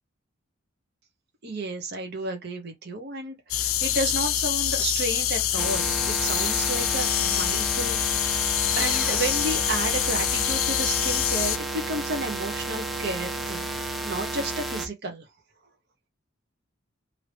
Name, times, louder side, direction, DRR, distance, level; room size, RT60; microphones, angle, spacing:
voice 1, 1.4-15.3, right 2 dB, 55° right, 0.8 m, -32 dB
sound 1, 3.5-11.6, left 11 dB, 90° left, 0.5 m, -25 dB
sound 2, 5.6-14.9, right 2 dB, ahead, 0.5 m, -32 dB
3.0 x 2.7 x 3.1 m
head